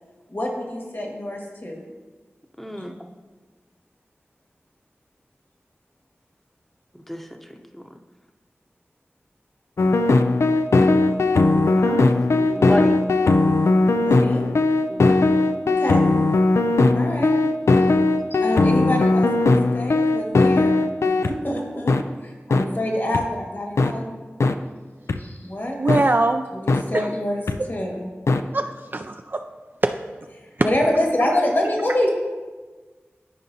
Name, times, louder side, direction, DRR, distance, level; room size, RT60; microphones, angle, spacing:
voice 1, 0.3-1.8 14.0-14.5 15.3-16.0 16.9-17.4 18.3-22.0 22.2-24.1 25.2-25.8 26.5-27.4 27.7-28.1 30.4-32.1, left 1 dB, 50° left, 0 dB, 1.8 m, -26 dB
voice 2, 2.6-2.9 7.1-7.2 7.7-7.8 11.8-13.0 14.9-15.2, equal, 5° left, 5 dB, 0.8 m, -30 dB
sound 1, 9.8-21.3 21.9-22.0 22.5-22.6 23.1-23.2 23.8-23.9 24.4-24.5 25.1-25.2 25.9-26.0 26.7-26.8 27.5-27.6 28.3-28.4, left 2 dB, 80° left, 0.4 m, -18 dB
voice 3, 25.8-26.5 26.9-27.1 28.5-29.4 29.8-29.9, right 2 dB, 45° right, 6 dB, 0.3 m, -22 dB
13.0 x 5.1 x 2.8 m, 1.3 s
cardioid pair, 40°, 5 cm